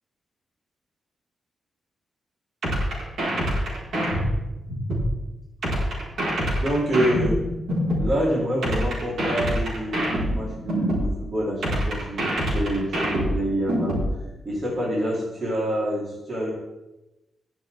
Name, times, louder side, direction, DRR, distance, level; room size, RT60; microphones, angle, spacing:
sound 1, 2.6-5.1 5.6-8.1 8.6-11.1 11.6-14.1, equal, 65° right, 5.0 m, -25 dB
voice 1, 6.6-7.4 8.0-14.0 14.4-16.5, equal, 30° right, -5 dB, 4.0 m, -27 dB
21.5 x 7.4 x 3.7 m, 1.0 s
wide cardioid pair, 165°, 0 cm